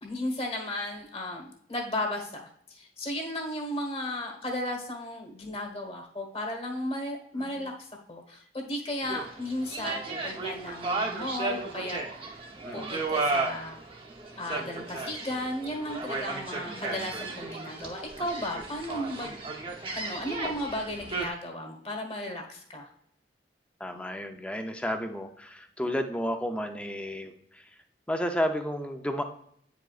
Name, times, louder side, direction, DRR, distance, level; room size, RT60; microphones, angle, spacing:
voice 1, 0.0-7.7 8.1-12.4 12.7-13.8 14.4-19.4 19.9-22.9, left 1 dB, 35° left, 2 dB, 1.4 m, -35 dB
voice 2, 7.4-7.7 12.6-12.9 16.7-17.1 23.8-27.7 28.1-29.2, equal, 5° left, 5 dB, 0.5 m, -32 dB
sound 1, 9.0-21.3, right 3 dB, 30° right, 0.9 m, -34 dB
9.0 x 4.9 x 2.4 m, 0.67 s
head